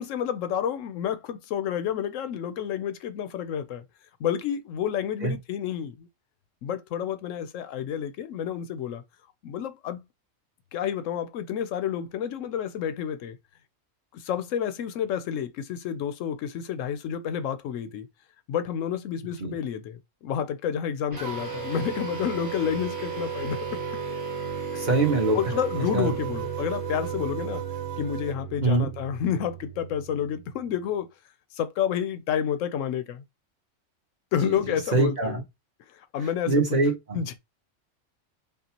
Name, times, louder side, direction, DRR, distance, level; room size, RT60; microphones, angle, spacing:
voice 1, 0.0-3.8 4.2-6.1 6.6-9.0 9.4-10.0 10.7-13.4 14.1-18.1 18.5-23.6 25.3-27.6 28.0-31.1 31.5-33.2 34.3-35.4 36.1-36.5 37.1-37.4, left 9 dB, 80° left, 0.9 m, -29 dB
sound 1, 21.1-30.8, right 2 dB, 15° right, 1.6 m, -37 dB
sound 2, 21.2-28.4, right 15 dB, 90° right, 1.0 m, -35 dB
voice 2, 24.8-25.4 25.9-26.1 28.6-28.9 34.4-35.4 36.5-37.2, right 3 dB, 35° right, 1.4 m, -24 dB
5.3 x 2.4 x 2.8 m
omnidirectional pair, 1.3 m